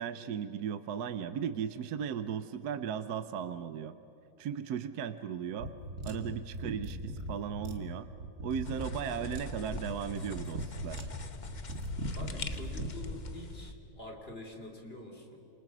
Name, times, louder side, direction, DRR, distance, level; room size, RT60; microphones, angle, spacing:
voice 1, 0.0-4.0 4.4-5.7 6.0-8.1 8.4-11.1, right 8 dB, 60° right, 11 dB, 1.1 m, -36 dB
sound 1, 5.6-13.0, right 1 dB, 40° right, 2.3 m, -40 dB
sound 2, 8.6-13.7, left 3 dB, 45° left, 0.6 m, -42 dB
voice 2, 12.1-15.4, left 1 dB, 25° left, 2 dB, 3.4 m, -46 dB
28.5 x 28.0 x 6.1 m, 3.0 s
omnidirectional pair, 2.3 m